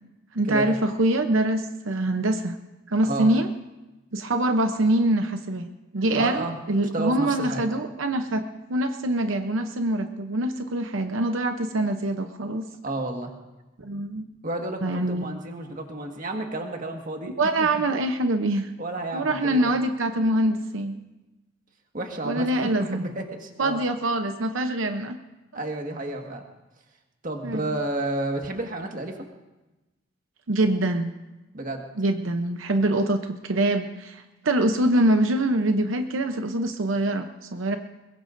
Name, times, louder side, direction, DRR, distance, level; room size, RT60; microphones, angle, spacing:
voice 1, 0.3-2.6 2.9-3.5 4.1-5.7 5.9-12.7 13.8-14.2 14.8-15.2 17.4-18.7 19.1-20.9 22.2-23.1 23.6-25.2 27.4-27.7 30.5-31.1 32.0-37.8, right 1 dB, 90° right, 7 dB, 0.8 m, -24 dB
voice 2, 6.2-6.6 6.9-7.6 12.8-13.3 14.4-17.3 17.6-17.7 18.8-19.7 21.9-23.8 25.5-26.4 27.2-29.3 31.5-31.8, right 2 dB, 45° right, 2 dB, 1.7 m, -31 dB
21.5 x 21.5 x 2.6 m, 1.1 s
head